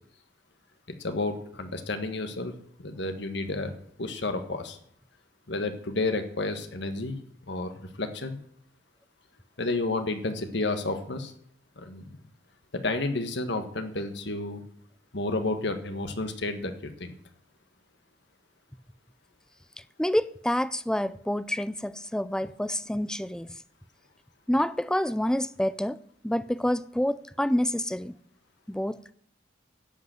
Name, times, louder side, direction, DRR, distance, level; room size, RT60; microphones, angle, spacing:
voice 1, 0.9-2.5 2.8-3.7 4.0-4.8 5.5-7.2 7.5-8.4 9.6-11.3 11.8-12.0 12.7-14.6 15.1-17.1, left 2 dB, 65° left, 1.6 m, -31 dB
voice 2, 20.0-23.5 24.5-28.2 28.7-29.1, left 1 dB, 5° left, 0.4 m, -28 dB
11.0 x 8.1 x 7.6 m
head